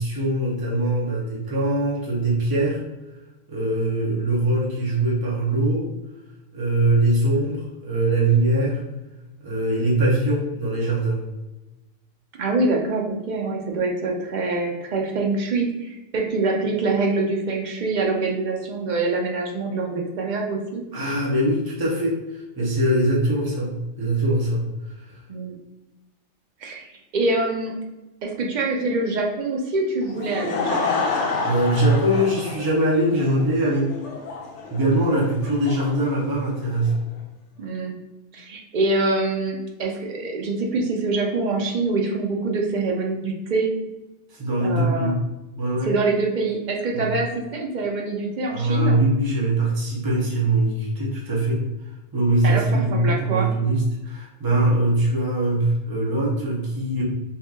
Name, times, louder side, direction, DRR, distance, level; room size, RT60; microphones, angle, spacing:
voice 1, 0.0-2.8 3.5-5.9 6.5-8.8 9.4-11.2 20.9-24.6 31.4-33.9 34.7-36.9 44.3-45.2 45.6-45.9 46.9-47.1 48.5-51.7 52.1-57.0, right 1 dB, 20° right, -4 dB, 0.6 m, -22 dB
voice 2, 12.4-20.8 25.3-25.5 26.6-27.8 28.2-31.0 37.6-38.0 38.3-43.7 44.6-45.1 45.8-49.0 52.4-53.5, right 3 dB, 60° right, 0 dB, 0.5 m, -25 dB
Laughter / Crowd, 30.0-37.0, left 4 dB, 65° left, 1.0 m, -29 dB
2.8 x 2.5 x 3.5 m, 1.0 s
omnidirectional pair, 1.3 m